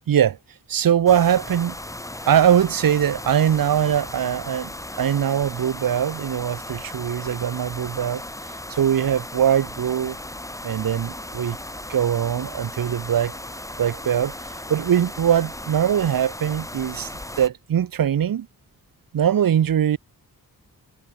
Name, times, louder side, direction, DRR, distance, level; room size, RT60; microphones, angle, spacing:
voice 1, 0.1-0.4 0.7-1.8 2.3-8.2 8.7-10.2 10.6-11.6 11.9-13.3 13.8-14.3 14.7-17.1 17.4-18.5 19.1-20.0, right 9 dB, 70° right, 0.9 m, -21 dB
sound 1, 1.1-17.5, left 1 dB, 10° left, 2.5 m, -36 dB
wide cardioid pair, 125°, 36 cm